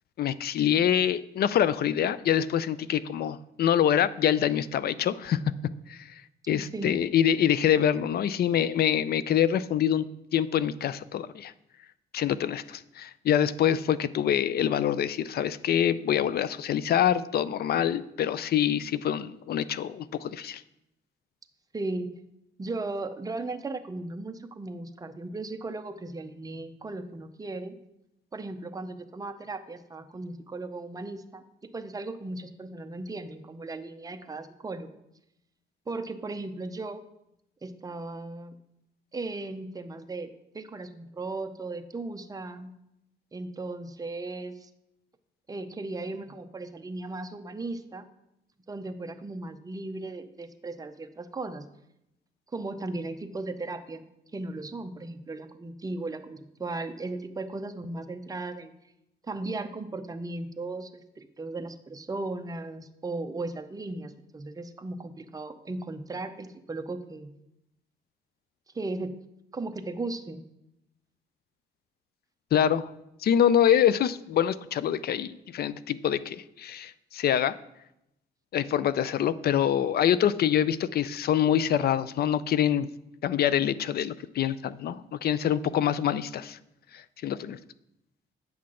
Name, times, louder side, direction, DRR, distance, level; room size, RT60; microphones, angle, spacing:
voice 1, 0.2-5.4 5.9-6.1 6.5-10.1 10.3-11.5 12.1-20.6 72.5-72.9 73.2-77.6 78.5-82.9 83.2-86.6 86.9-87.6, left 9 dB, 55° left, 17 dB, 0.4 m, -25 dB
voice 2, 6.4-7.0 21.7-22.1 22.6-27.8 28.3-31.4 31.7-35.0 35.9-37.0 37.6-38.5 39.1-42.7 43.3-44.7 45.5-48.1 48.7-51.7 52.5-54.0 54.3-58.7 59.3-60.9 61.2-67.3 68.7-69.2 69.5-70.4, right 2 dB, 20° right, 8 dB, 0.6 m, -36 dB
8.5 x 5.8 x 3.7 m, 0.84 s
cardioid pair, 90°, 20 cm